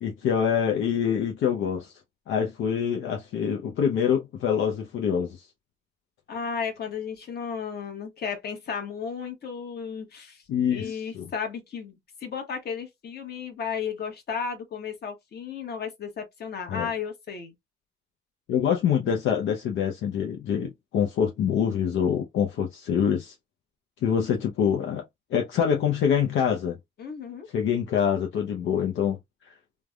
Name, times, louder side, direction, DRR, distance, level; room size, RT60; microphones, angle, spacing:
voice 1, 0.0-1.9 2.3-5.5 10.5-11.3 16.7-16.9 18.5-23.3 24.0-25.0 25.3-26.8 27.5-29.2 29.4-29.5, left 8 dB, 75° left, 0.6 m, -25 dB
voice 2, 6.3-10.4 10.7-17.5 27.0-27.5, left 6 dB, 55° left, 1.1 m, -34 dB
3.2 x 2.1 x 2.3 m
cardioid pair, 90°, 20 cm